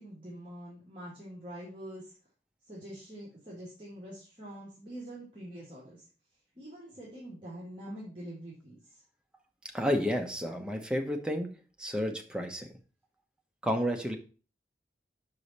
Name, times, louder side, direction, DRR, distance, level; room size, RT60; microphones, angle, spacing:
voice 1, 0.0-2.1 2.7-6.1 6.6-8.8, right 1 dB, 30° right, -7 dB, 2.0 m, -45 dB
voice 2, 9.7-11.5 11.8-12.7 13.6-14.2, equal, 5° right, 3 dB, 0.8 m, -31 dB
6.1 x 5.0 x 4.1 m, 0.37 s
head